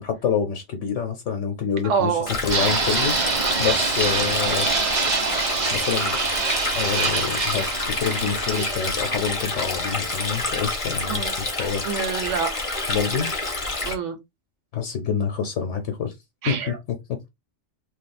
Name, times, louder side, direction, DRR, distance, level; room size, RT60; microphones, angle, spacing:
voice 1, 0.0-4.7 5.7-6.2 6.7-11.8 12.9-13.3 14.7-16.1 16.5-16.7, left 7 dB, 75° left, 1.0 m, -27 dB
voice 2, 1.8-2.3 11.1-11.3 11.8-12.5 13.8-14.2 16.4-16.8, right 6 dB, 70° right, 1.1 m, -26 dB
Stream, 2.3-13.9, left 2 dB, 30° left, 0.8 m, -28 dB
Fixed-wing aircraft airplane, 2.5-10.4, right 4 dB, 40° right, 0.7 m, -26 dB
2.7 x 2.4 x 4.1 m
omnidirectional pair, 1.3 m